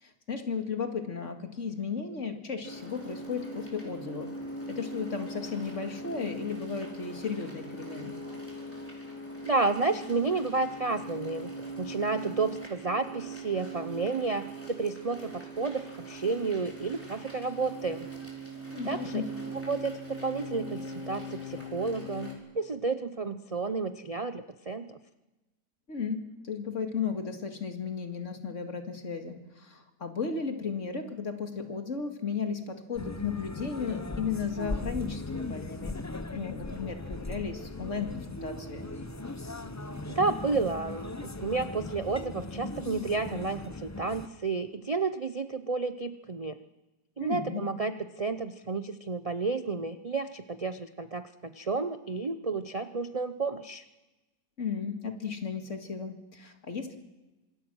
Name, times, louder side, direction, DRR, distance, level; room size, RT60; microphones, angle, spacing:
voice 1, 0.0-4.3 4.7-8.2 18.7-19.3 25.9-36.0 36.3-38.9 47.2-47.6 54.6-57.0, left 5 dB, 45° left, 5 dB, 2.4 m, -35 dB
sound 1, 2.6-22.3, right 1 dB, 5° left, 4.8 m, -41 dB
voice 2, 9.4-18.1 18.8-19.2 19.7-25.0 40.1-46.6 47.2-53.8, right 4 dB, 45° right, 10 dB, 0.4 m, -31 dB
sound 2, 32.9-44.3, left 2 dB, 25° left, 0.3 m, -38 dB
26.0 x 21.5 x 6.3 m, 1.1 s
omnidirectional pair, 1.8 m